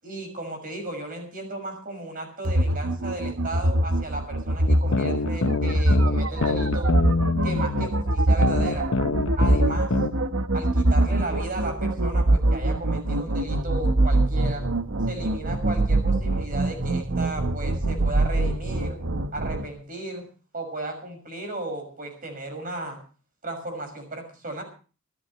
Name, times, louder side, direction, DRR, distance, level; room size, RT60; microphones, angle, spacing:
voice 1, 0.0-6.9 7.4-8.9 9.4-9.9 10.5-14.7 15.1-19.0 19.3-20.3 20.5-23.0 23.4-24.6, right 2 dB, 40° right, 5 dB, 6.2 m, -35 dB
sound 1, 2.4-19.7, right 1 dB, 80° right, 1.3 m, -23 dB
sound 2, 4.7-7.9 8.4-10.1, left 3 dB, 70° left, 0.8 m, -26 dB
26.5 x 14.0 x 3.2 m, 0.37 s
head